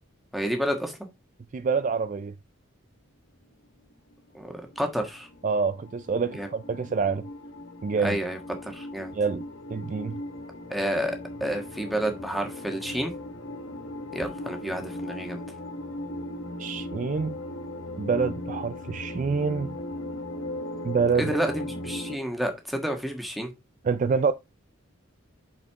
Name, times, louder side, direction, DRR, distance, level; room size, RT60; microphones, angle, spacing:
voice 1, 0.3-0.9 4.3-5.3 6.4-6.5 8.0-9.1 10.7-11.1 11.4-13.1 14.1-15.4 21.2-23.5, equal, ahead, 1.4 m, -30 dB
voice 2, 1.5-2.3 5.4-7.2 7.8-8.2 9.1-9.4 9.7-10.2 16.6-17.4 18.0-19.8 20.8-21.3 23.8-24.3, right 5 dB, 40° right, 0.3 m, -26 dB
sound 1, 3.9-22.2, left 1 dB, 80° left, 1.1 m, -38 dB
6.3 x 5.8 x 3.6 m
head